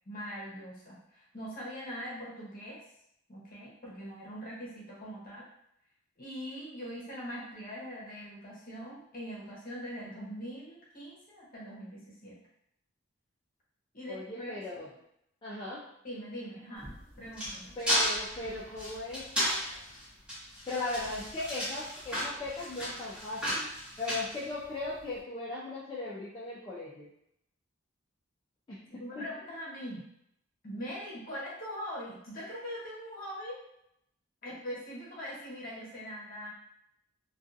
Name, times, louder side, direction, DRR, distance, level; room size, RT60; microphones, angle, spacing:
voice 1, 0.1-2.8 3.3-5.4 6.2-12.4 13.9-14.6 16.0-16.9 17.2-17.8 28.9-30.1 30.6-33.6 34.4-36.5, equal, 45° left, -5 dB, 0.8 m, -42 dB
voice 2, 14.1-14.9 15.4-15.8 17.8-19.3 20.7-23.7 24.0-27.1 28.7-28.8 29.2-29.3, left 2 dB, 25° left, -7 dB, 0.4 m, -38 dB
sound 1, 16.8-25.0, equal, 5° right, 0.9 m, -34 dB
2.6 x 2.3 x 2.5 m, 0.77 s
head